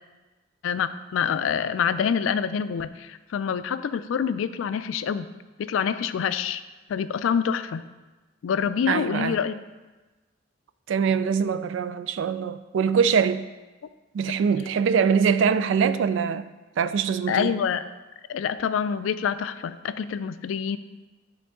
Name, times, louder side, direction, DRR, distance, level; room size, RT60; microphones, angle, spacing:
voice 1, 0.6-5.3 5.6-6.6 6.9-7.8 8.4-9.6 17.3-17.8 18.3-20.8, left 7 dB, 90° left, 0.3 m, -26 dB
voice 2, 8.9-9.4 10.9-13.5 14.1-16.5 16.8-17.6, right 6 dB, 70° right, 0.3 m, -23 dB
9.2 x 3.7 x 3.7 m
head